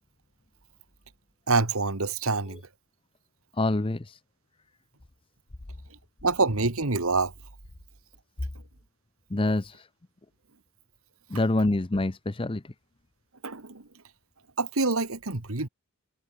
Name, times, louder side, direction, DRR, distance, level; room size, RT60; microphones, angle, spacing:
voice 1, 1.5-2.6 6.2-7.3 13.4-13.8 14.6-15.7, right 3 dB, 80° right, 2.0 m, -26 dB
voice 2, 3.5-4.2 9.3-9.9 11.3-12.7, left 2 dB, 25° left, 0.7 m, -26 dB
head